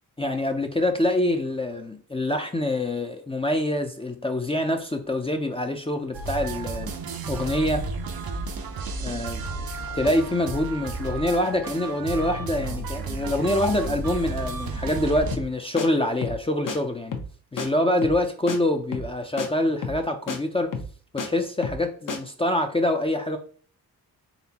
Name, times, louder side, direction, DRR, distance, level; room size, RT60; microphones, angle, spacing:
voice 1, 0.2-6.9 7.3-7.8 9.0-9.4 9.9-17.1 17.5-20.7 21.1-23.4, left 1 dB, 15° left, 0.5 m, -25 dB
sound 1, 6.1-15.4, right 3 dB, 65° right, 0.7 m, -32 dB
sound 2, 15.3-15.5 15.8-15.9 16.2-16.4 16.7-16.8 17.1-17.3 17.6-17.7 18.0-18.2 18.5-18.6 18.9-19.1 19.4-19.5 19.8-20.0 20.3-20.4 20.7-21.3 21.6-21.8 22.1-22.2, left 4 dB, 55° left, 0.8 m, -31 dB
4.0 x 3.4 x 2.8 m
cardioid pair, 70°, 38 cm